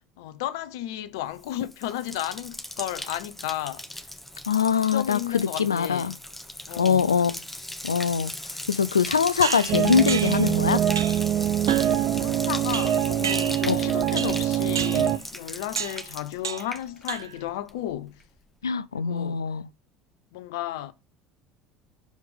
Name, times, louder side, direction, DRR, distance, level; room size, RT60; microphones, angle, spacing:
voice 1, 0.2-3.9 4.8-6.2 6.7-7.1 12.0-18.2 18.9-19.4 20.3-20.9, left 13 dB, 70° left, 0.8 m, -33 dB
Bathtub (filling or washing), 1.3-17.4 17.7-18.2, left 1 dB, 10° left, 1.4 m, -38 dB
voice 2, 4.5-6.1 6.8-7.4 7.8-8.3 8.7-10.8 13.7-13.9 18.6-19.7, left 6 dB, 85° left, 0.4 m, -23 dB
sound 1, 9.4-10.5 11.0-11.3 11.7-12.0 12.7-13.8 14.2-14.5 14.8-15.1 15.8-16.1 16.4-16.8 17.1-17.5, right 7 dB, 85° right, 0.6 m, -32 dB
sound 2, 9.7-15.2, right 11 dB, 50° right, 0.7 m, -24 dB
11.5 x 5.0 x 3.5 m
hypercardioid pair, 70°, 2 cm